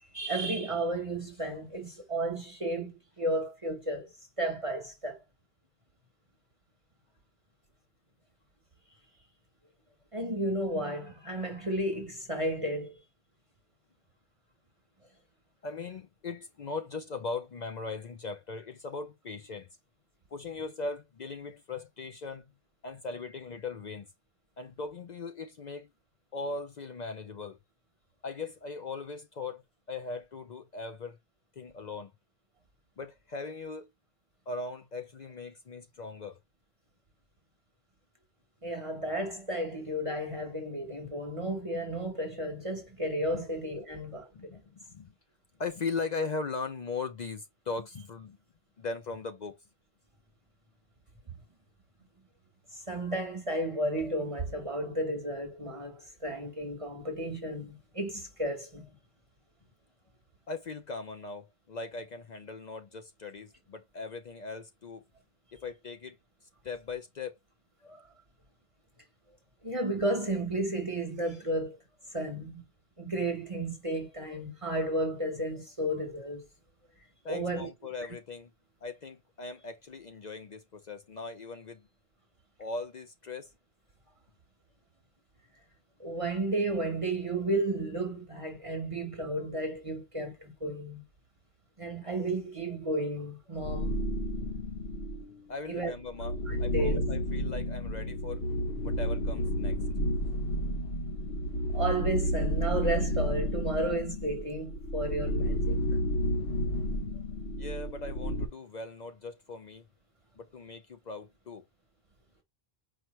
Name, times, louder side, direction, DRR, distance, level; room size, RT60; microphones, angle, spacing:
voice 1, 0.1-4.1 4.4-5.2 10.1-12.9 38.6-44.5 52.7-58.9 67.8-68.0 69.6-71.8 72.1-72.6 73.0-76.5 77.3-77.7 86.0-91.0 91.8-94.0 95.7-95.9 96.5-97.0 101.7-105.8, right 1 dB, 30° right, 1.2 m, -33 dB
voice 2, 15.6-19.7 20.3-22.5 22.8-24.1 24.6-25.9 26.3-27.6 28.2-29.6 29.9-31.2 31.6-32.1 33.0-33.9 34.5-36.4 43.3-43.4 44.3-45.1 45.6-48.4 48.8-49.6 60.5-65.0 65.5-66.2 66.6-67.4 77.2-78.5 78.8-81.9 82.6-83.5 95.5-96.3 96.6-98.4 98.8-99.8 107.6-109.9 110.4-111.6, left 3 dB, 50° left, 0.6 m, -39 dB
sound 1, 93.6-95.3 95.9-108.5, equal, 70° left, 1.1 m, -31 dB
4.9 x 2.9 x 3.1 m
omnidirectional pair, 1.1 m